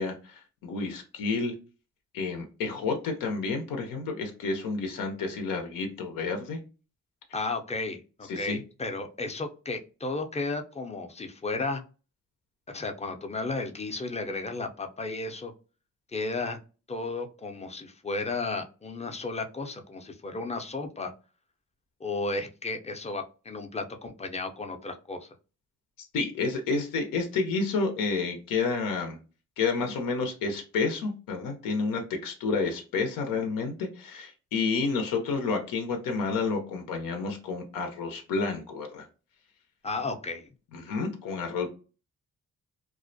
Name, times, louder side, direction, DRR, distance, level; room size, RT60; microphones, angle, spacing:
voice 1, 0.0-1.5 2.1-6.6 8.3-8.6 26.0-29.2 29.6-39.1 40.7-41.7, left 4 dB, 90° left, 4 dB, 0.6 m, -30 dB
voice 2, 7.3-11.8 12.7-15.5 16.1-16.6 16.9-21.1 22.0-25.3 39.8-40.5, left 3 dB, 20° left, 5 dB, 0.5 m, -33 dB
2.4 x 2.1 x 2.5 m, 0.34 s
cardioid pair, 65°, 33 cm